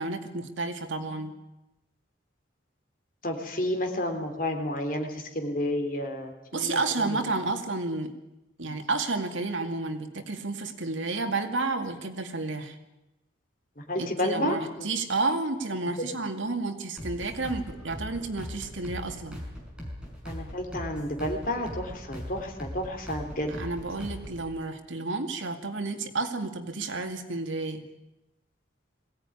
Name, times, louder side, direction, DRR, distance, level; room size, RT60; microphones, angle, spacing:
voice 1, 0.0-1.3 6.5-8.1 8.6-12.8 14.0-19.4 23.5-27.8, right 3 dB, 85° right, 6 dB, 2.3 m, -31 dB
voice 2, 3.2-7.2 13.9-14.9 20.3-23.5, left 1 dB, 45° left, 3 dB, 3.5 m, -31 dB
sound 1, 17.0-24.5, equal, 5° right, 5.4 m, -40 dB
21.5 x 17.0 x 9.9 m, 0.96 s
head